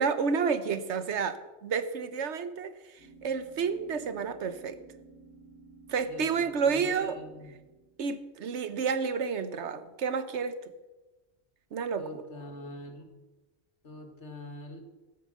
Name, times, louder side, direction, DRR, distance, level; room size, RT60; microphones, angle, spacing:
voice 1, 0.0-2.7 3.2-4.8 5.9-7.2 8.0-10.6 11.7-12.2, right 6 dB, 90° right, 12 dB, 1.2 m, -30 dB
sound 1, 3.0-8.8, right 3 dB, 40° right, 4.7 m, -55 dB
voice 2, 6.1-7.5 12.0-13.1 13.8-14.8, left 1 dB, 85° left, 5 dB, 2.1 m, -44 dB
14.5 x 8.9 x 6.4 m, 1.1 s
omnidirectional pair, 1.1 m